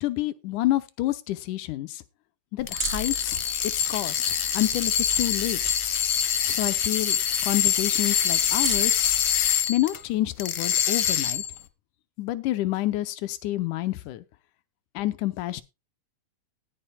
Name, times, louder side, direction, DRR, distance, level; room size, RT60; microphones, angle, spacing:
voice 1, 0.0-2.0 2.5-3.4 3.7-5.6 6.5-9.0 9.7-11.4 12.2-14.2 15.0-15.6, left 15 dB, 90° left, 2.2 m, -28 dB
sound 1, 2.6-10.0 10.4-11.6, left 9 dB, 70° left, 1.5 m, -25 dB
sound 2, 2.8-9.5, right 2 dB, 25° right, 3.1 m, -37 dB
19.0 x 9.0 x 2.2 m
omnidirectional pair, 3.5 m